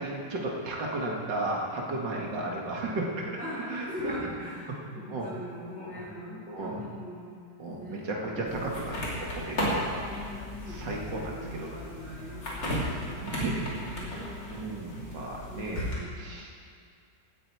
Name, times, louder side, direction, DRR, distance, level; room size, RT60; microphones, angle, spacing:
voice 1, 0.0-3.4 3.7-4.2 4.7-4.8 5.1-5.3 5.8-5.9 6.5-6.9 7.6-9.0 9.3-10.0 10.7-11.7 13.0-13.7 14.5-15.9 16.2-16.7, right 2 dB, 85° right, -2 dB, 2.5 m, -34 dB
voice 2, 3.4-7.4 7.7-8.5 10.0-14.5 15.5-16.3, left 1 dB, 5° right, -11 dB, 4.0 m, -42 dB
sound 1, 8.5-16.0, equal, 85° left, 3.7 m, -35 dB
16.5 x 13.0 x 4.7 m, 2.2 s
omnidirectional pair, 1.9 m